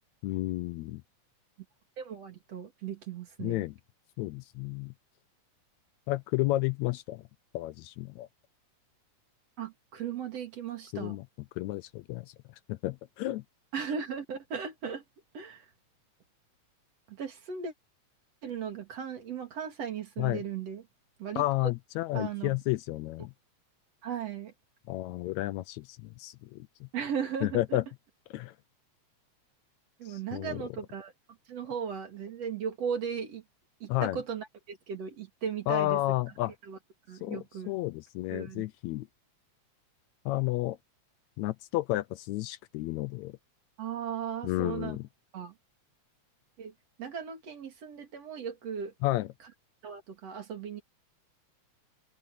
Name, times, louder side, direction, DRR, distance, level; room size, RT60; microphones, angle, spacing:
voice 1, 0.2-1.0 3.4-3.7 4.2-4.9 6.1-7.2 7.5-8.3 10.9-11.2 11.6-12.3 12.7-13.4 20.2-20.4 21.4-23.3 24.9-26.9 27.4-27.8 28.3-28.5 30.0-30.6 33.9-34.2 35.7-36.5 37.2-39.1 40.2-40.8 41.4-43.4 44.4-45.1 49.0-49.3, left 17 dB, 80° left, 1.8 m, -31 dB
voice 2, 2.0-3.6 9.6-11.2 13.7-15.0 15.3-15.6 17.1-17.7 18.4-20.8 21.2-21.7 22.1-22.5 24.0-24.5 26.9-27.6 30.0-31.1 31.5-33.4 33.8-36.0 36.7-36.8 37.1-37.7 38.3-38.6 43.8-45.0 45.3-45.5 46.6-46.7 47.0-48.9 49.8-50.8, right 7 dB, 55° right, 3.4 m, -37 dB
omnidirectional pair, 3.4 m